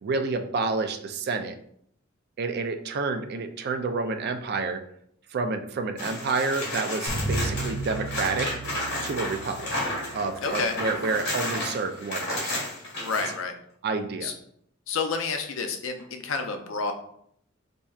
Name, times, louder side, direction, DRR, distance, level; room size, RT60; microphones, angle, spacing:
voice 1, 0.0-1.5 2.4-4.8 5.3-8.5 9.0-9.7 10.1-12.7 13.8-14.3, right 4 dB, 55° right, 7 dB, 0.4 m, -29 dB
sound 1, 6.0-13.3 16.0-16.1, left 1 dB, 60° left, 1.3 m, -32 dB
sound 2, 7.1-11.4, right 2 dB, 15° left, 0.8 m, -35 dB
voice 2, 10.4-10.7 13.0-13.5 14.2-14.3 14.9-16.9, left 4 dB, 80° left, 6 dB, 0.5 m, -29 dB
4.3 x 2.6 x 2.3 m, 0.68 s
head